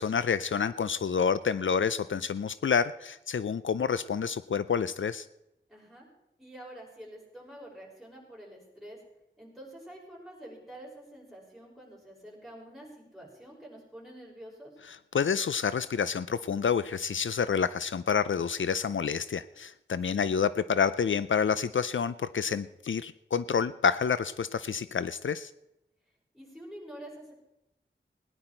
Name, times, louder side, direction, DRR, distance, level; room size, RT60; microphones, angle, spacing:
voice 1, 0.0-5.3 14.9-25.5, left 6 dB, 80° left, 15 dB, 0.4 m, -28 dB
voice 2, 5.7-6.1 6.4-9.0 9.4-14.7 20.1-20.3 26.3-27.3, right 1 dB, ahead, -3 dB, 6.0 m, -47 dB
18.5 x 11.0 x 4.4 m, 0.87 s
wide cardioid pair, 60°, 20 cm